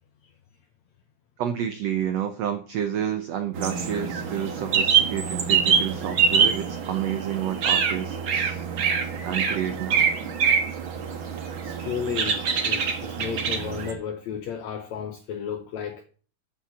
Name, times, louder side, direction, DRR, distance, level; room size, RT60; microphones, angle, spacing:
voice 1, 1.4-8.6 9.2-10.1, right 9 dB, 80° right, 1.5 m, -29 dB
sound 1, 3.5-13.9, right 6 dB, 55° right, 1.4 m, -25 dB
voice 2, 11.6-16.0, left 7 dB, 75° left, 1.6 m, -33 dB
8.5 x 7.4 x 7.3 m
omnidirectional pair, 4.2 m